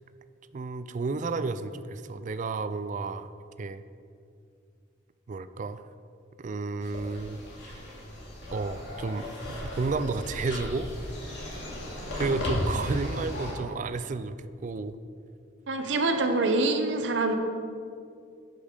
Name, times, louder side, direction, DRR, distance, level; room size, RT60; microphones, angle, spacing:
voice 1, 0.5-3.3 3.6-3.8 5.3-5.8 6.4-7.4 7.6-7.8 8.5-9.3 9.6-10.9 11.4-11.5 12.2-15.0, right 3 dB, 40° right, 12 dB, 0.3 m, -32 dB
sound 1, 6.8-13.5, left 1 dB, 65° left, 2.3 m, -35 dB
voice 2, 15.7-17.4, right 2 dB, 65° right, 6 dB, 0.8 m, -25 dB
11.5 x 5.3 x 5.0 m, 2.4 s
head